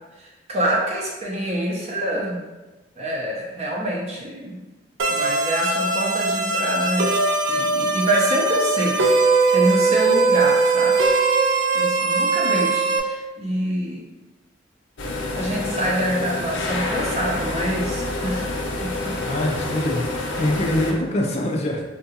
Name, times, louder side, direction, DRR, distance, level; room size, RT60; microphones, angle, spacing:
voice 1, 0.2-2.4 3.0-4.6 5.0-7.1 7.5-11.0 11.7-14.1 15.3-18.5 18.8-18.9, right 1 dB, 35° right, -2 dB, 0.6 m, -26 dB
sound 1, 5.0-13.0, right 3 dB, 80° right, 0.4 m, -20 dB
sound 2, 15.0-20.9, left 2 dB, 85° left, 0.5 m, -27 dB
voice 2, 19.2-21.8, left 1 dB, 35° left, 0 dB, 0.3 m, -24 dB
3.7 x 2.3 x 2.7 m, 1.1 s
head